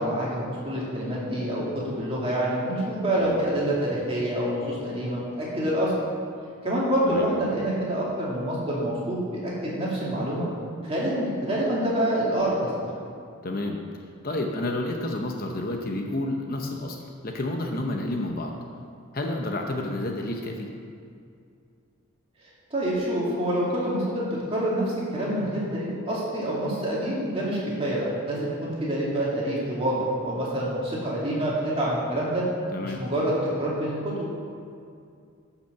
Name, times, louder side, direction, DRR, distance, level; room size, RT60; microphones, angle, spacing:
voice 1, 0.0-5.9 6.6-10.5 10.8-12.7 22.7-24.8 25.1-30.0 30.2-32.4 32.8-34.3, right 1 dB, 25° right, -6 dB, 2.4 m, -27 dB
voice 2, 13.4-13.8 14.2-17.0 17.2-18.6 19.1-20.7 32.7-33.0, left 1 dB, 40° left, 2 dB, 0.8 m, -30 dB
10.5 x 5.9 x 6.8 m, 2.4 s
head